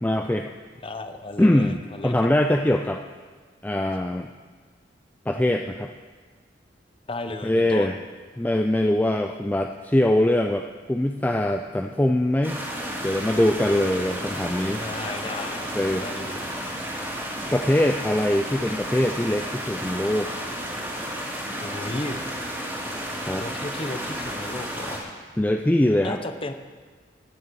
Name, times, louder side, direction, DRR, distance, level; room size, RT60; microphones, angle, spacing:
voice 1, 0.0-0.5 1.4-3.0 3.6-4.3 5.3-5.9 7.4-7.9 8.4-10.6 10.9-12.6 13.0-14.8 15.8-16.1 17.5-20.3 23.3-23.4 25.4-26.2, left 1 dB, 10° left, 4 dB, 0.3 m, -22 dB
voice 2, 0.8-2.1 7.1-7.9 14.7-15.7 16.0-16.4 21.6-22.2 23.4-25.1 26.0-26.5, left 2 dB, 30° left, 8 dB, 0.8 m, -34 dB
sound 1, 12.4-25.0, equal, 10° right, 2.3 m, -32 dB
15.5 x 9.5 x 4.7 m, 1.5 s
head